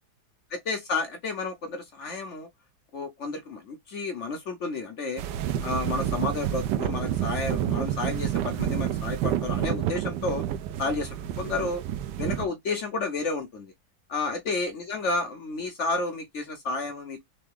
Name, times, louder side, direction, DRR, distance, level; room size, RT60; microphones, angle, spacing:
voice 1, 0.5-2.5 2.9-5.2 5.6-10.4 10.8-11.8 12.2-13.7 14.1-17.2, left 3 dB, 65° left, 0.7 m, -31 dB
sound 1, 5.2-12.5, right 11 dB, 70° right, 1.1 m, -29 dB
3.8 x 3.4 x 3.6 m
omnidirectional pair, 2.2 m